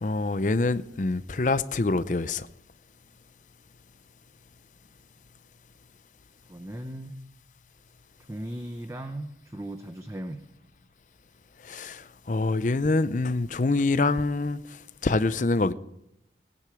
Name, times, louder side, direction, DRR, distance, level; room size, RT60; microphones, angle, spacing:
voice 1, 0.0-2.5 11.6-15.7, left 3 dB, 45° left, 0.6 m, -26 dB
voice 2, 6.5-7.1 8.3-10.4, right 1 dB, 15° right, 0.7 m, -37 dB
18.5 x 9.8 x 5.0 m
head